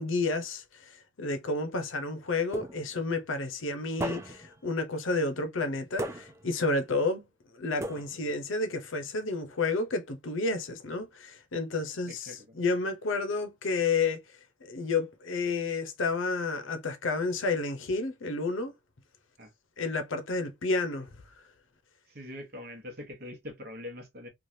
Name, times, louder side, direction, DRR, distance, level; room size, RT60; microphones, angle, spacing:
voice 1, 0.0-7.3 7.5-14.2 14.6-18.7 19.8-21.1, left 3 dB, 70° left, 0.6 m, -31 dB
sound 1, 2.5-3.1 4.0-4.6 6.0-6.6 7.8-8.5, right 1 dB, 15° right, 0.4 m, -37 dB
voice 2, 12.1-12.6 19.4-19.5 22.1-24.3, left 1 dB, 45° right, 1.0 m, -43 dB
3.1 x 2.4 x 2.6 m
head